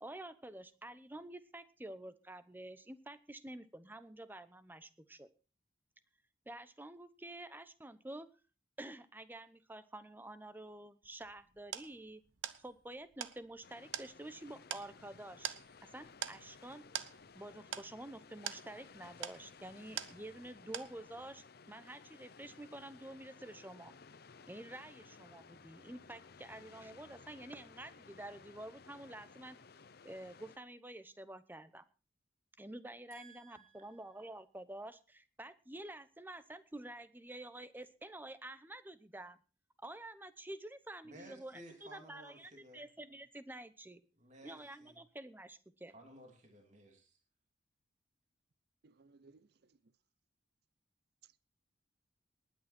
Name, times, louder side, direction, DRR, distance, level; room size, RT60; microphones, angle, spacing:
voice 1, 0.0-5.3 6.5-8.3 8.8-12.2 12.6-15.6 15.8-16.8 17.3-23.9 24.5-29.6 30.0-31.8 32.6-39.4 39.8-44.0 44.4-45.9, right 1 dB, 10° right, 0.8 m, -49 dB
sound 1, 11.0-20.5 20.7-21.3, right 9 dB, 90° right, 1.0 m, -45 dB
sound 2, 13.6-30.6, left 5 dB, 55° left, 0.7 m, -58 dB
voice 2, 33.1-34.3 41.0-42.8 44.2-45.0 45.9-47.2, right 1 dB, 40° right, 3.0 m, -57 dB
voice 3, 48.8-49.9 51.2-51.3, right 4 dB, 55° right, 0.6 m, -63 dB
19.5 x 9.8 x 4.3 m
head